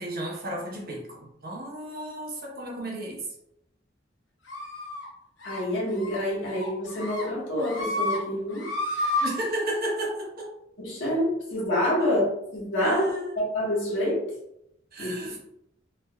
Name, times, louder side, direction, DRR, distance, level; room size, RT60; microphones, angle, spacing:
voice 1, 0.0-3.2 9.2-10.5 12.0-12.1 12.8-13.4 14.9-15.4, right 1 dB, 50° right, -2 dB, 0.9 m, -33 dB
sound 1, 4.5-5.1 5.4-5.6 5.9-6.2 6.5-7.2 7.6-8.2 8.5-9.3, left 2 dB, 70° left, 0.9 m, -30 dB
voice 2, 5.4-8.7 10.8-12.2 12.5-13.1 13.4-14.2 15.0-15.3, left 1 dB, 90° left, -5 dB, 1.4 m, -27 dB
3.3 x 2.5 x 2.3 m, 0.80 s
head